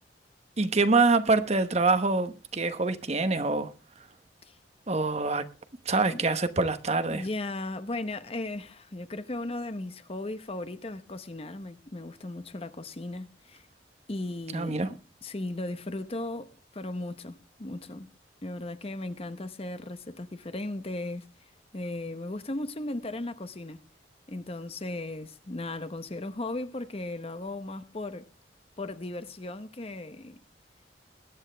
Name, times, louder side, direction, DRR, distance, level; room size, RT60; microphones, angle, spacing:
voice 1, 0.6-3.7 4.9-5.5 5.9-7.3 14.5-14.9, right 3 dB, 35° right, 1.0 m, -25 dB
voice 2, 7.1-13.7 14.1-14.8 15.2-18.1 18.4-23.8 24.3-28.3 28.8-30.4, left 2 dB, 35° left, 0.8 m, -36 dB
21.0 x 8.9 x 3.3 m
head